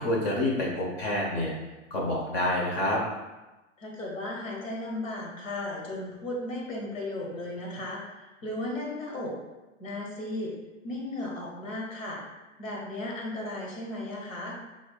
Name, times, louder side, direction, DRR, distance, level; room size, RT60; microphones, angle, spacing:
voice 1, 0.0-1.5 1.9-3.0, left 1 dB, 50° left, -3 dB, 1.2 m, -27 dB
voice 2, 3.8-9.3 9.8-10.5 10.8-12.2 12.6-14.6, left 1 dB, 85° left, -2 dB, 1.5 m, -35 dB
6.1 x 3.7 x 2.4 m, 1.1 s
hypercardioid pair, 110°, 38 cm